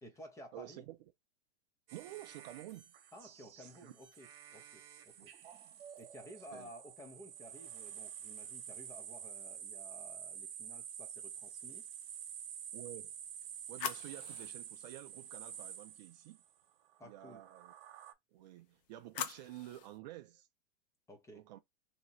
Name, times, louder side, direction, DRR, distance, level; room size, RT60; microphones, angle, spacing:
voice 1, 0.0-0.8 3.1-5.3 5.9-11.9 17.0-17.4 21.1-21.4, equal, 10° left, 0.6 m, -54 dB
voice 2, 0.5-1.0 1.9-2.9 3.6-3.9 5.2-5.3 6.5-6.7 12.7-13.1 13.7-16.4 17.0-17.7 18.3-20.5 21.3-21.6, right 14 dB, 40° right, 0.4 m, -50 dB
sound 1, 1.9-16.5 17.1-18.1, right 8 dB, 60° right, 1.1 m, -49 dB
sound 2, 13.0-16.0 18.4-20.0, left 9 dB, 55° left, 0.8 m, -46 dB
3.0 x 2.8 x 3.9 m
supercardioid pair, 145°, 33 cm